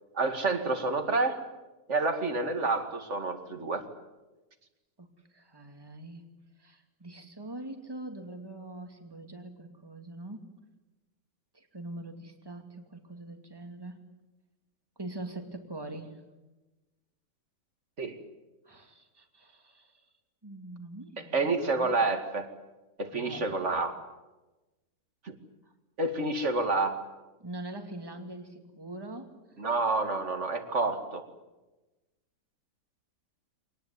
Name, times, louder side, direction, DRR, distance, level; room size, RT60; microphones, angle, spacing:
voice 1, 0.1-1.4 1.9-3.8 18.0-18.2 21.2-22.5 23.0-24.0 25.2-25.3 26.0-27.0 29.6-31.2, right 3 dB, 45° right, 7 dB, 2.6 m, -29 dB
voice 2, 5.3-6.2 6.6-10.4 11.5-14.0 15.0-16.1 18.6-20.0 20.4-21.9 23.1-23.8 27.4-29.3, right 2 dB, 15° right, 5 dB, 2.6 m, -43 dB
25.5 x 19.5 x 9.7 m, 1.1 s
omnidirectional pair, 1.8 m